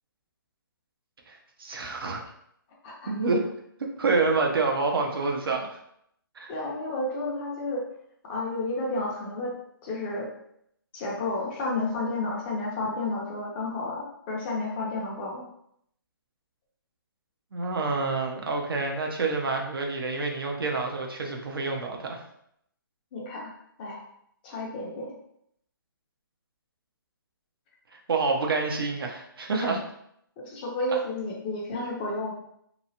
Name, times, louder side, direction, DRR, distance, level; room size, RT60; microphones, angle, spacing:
voice 1, 1.3-2.3 3.1-3.5 4.0-5.8 6.4-6.5 17.5-22.2 27.9-29.8, right 3 dB, 80° right, 1 dB, 0.7 m, -28 dB
voice 2, 6.5-7.8 8.2-9.5 9.8-10.3 10.9-15.5 23.1-23.5 23.8-24.1 24.4-25.1 29.6-29.7 30.4-32.3, left 2 dB, 25° left, -3 dB, 0.6 m, -31 dB
2.9 x 2.4 x 2.7 m, 0.73 s
hypercardioid pair, 150°, 12 cm